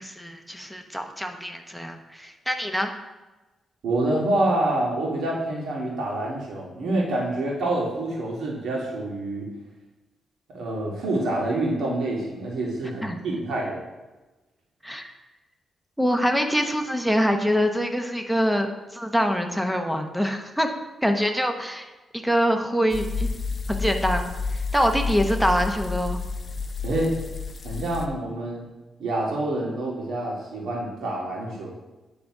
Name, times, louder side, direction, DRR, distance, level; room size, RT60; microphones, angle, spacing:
voice 1, 0.0-2.9 13.0-13.2 14.8-15.1 16.0-20.7 21.0-21.9 22.1-23.3 23.7-24.3 24.7-26.2, equal, ahead, 5 dB, 0.8 m, -24 dB
voice 2, 3.8-9.5 10.5-13.8 26.8-27.1 27.6-28.6 29.0-31.7, right 1 dB, 80° right, -3 dB, 2.1 m, -27 dB
sound 1, 22.9-28.1, left 4 dB, 35° left, 0.6 m, -30 dB
9.5 x 3.9 x 4.8 m, 1.1 s
cardioid pair, 105°, 0 cm